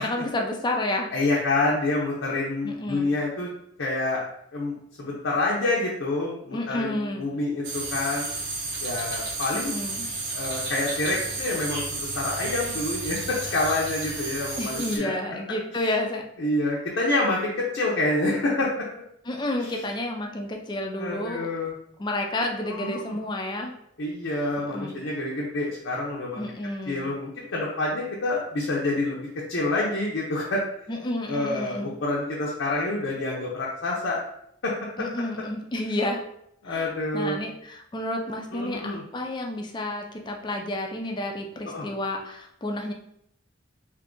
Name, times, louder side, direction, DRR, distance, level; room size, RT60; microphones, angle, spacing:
voice 1, 0.0-1.1 2.6-3.1 6.5-7.3 9.5-10.1 14.6-16.3 19.3-21.5 22.0-23.7 24.7-25.0 26.3-27.1 30.9-31.9 35.0-36.2 36.7-42.9, left 1 dB, 25° left, 2 dB, 0.4 m, -30 dB
voice 2, 1.1-3.5 3.8-4.2 4.5-8.3 8.8-9.7 10.3-15.1 15.7-15.9 16.4-18.7 19.6-19.8 21.0-21.7 22.7-23.2 24.0-26.4 26.9-29.2 29.5-30.6 31.3-34.2 34.6-34.7 36.6-37.4 38.5-39.0 41.6-41.9, left 2 dB, 70° left, -4 dB, 0.6 m, -27 dB
sound 1, 7.6-15.0, right 3 dB, 60° right, 0.8 m, -32 dB
2.5 x 2.5 x 3.7 m, 0.74 s
head